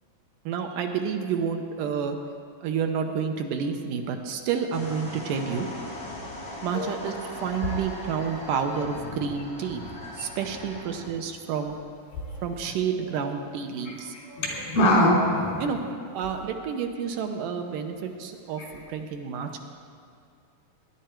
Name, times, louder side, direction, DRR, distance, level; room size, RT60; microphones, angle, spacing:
voice 1, 0.5-2.2 2.6-5.7 6.6-9.8 10.1-11.7 12.4-14.1 14.8-14.9 15.6-15.8 16.1-19.6, right 6 dB, 75° right, 5 dB, 2.4 m, -29 dB
sound 1, 4.7-11.1, left 1 dB, 30° left, 2.3 m, -39 dB
voice 2, 14.2-15.7, left 1 dB, 85° left, -3 dB, 4.8 m, -23 dB
20.0 x 11.0 x 4.5 m, 2.4 s
omnidirectional pair, 4.0 m